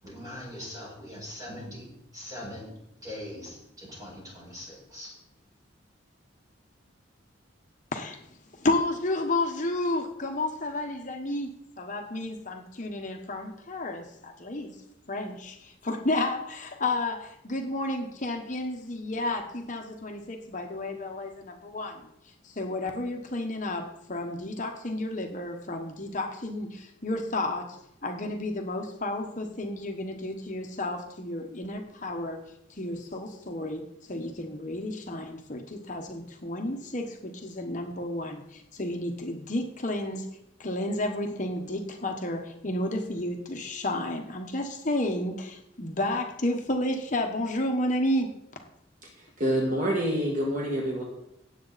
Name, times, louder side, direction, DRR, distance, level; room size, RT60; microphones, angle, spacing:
voice 1, 0.0-5.2, left 1 dB, 20° right, -4 dB, 5.3 m, -41 dB
voice 2, 8.5-11.5 11.8-14.8 15.1-27.8 28.0-32.4 32.7-40.3 40.6-48.3, left 1 dB, 40° left, 3 dB, 1.1 m, -31 dB
voice 3, 49.0-51.0, equal, 40° right, -1 dB, 1.9 m, -27 dB
17.0 x 7.9 x 4.1 m, 0.80 s
head